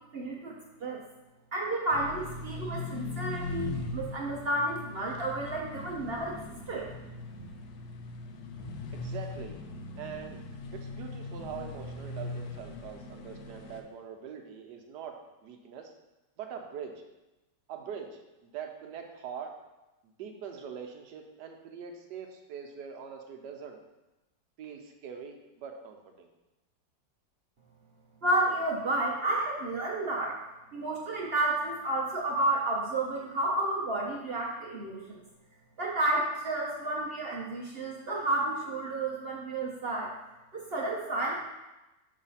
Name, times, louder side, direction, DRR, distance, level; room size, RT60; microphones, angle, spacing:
voice 1, 0.1-0.5 0.8-1.0 1.5-6.4 6.7-6.9 28.2-30.4 30.7-35.2 35.8-40.1 40.5-41.4, right 2 dB, 55° right, -3 dB, 0.7 m, -31 dB
sound 1, 1.9-13.8, left 2 dB, 70° left, 1.1 m, -40 dB
voice 2, 8.9-9.6 10.0-10.4 10.7-15.2 15.4-15.9 16.4-16.9 17.7-18.2 18.5-19.5 20.2-23.8 24.6-26.3, right 7 dB, 75° right, 4 dB, 1.2 m, -43 dB
6.4 x 3.2 x 5.5 m, 1.0 s
omnidirectional pair, 1.9 m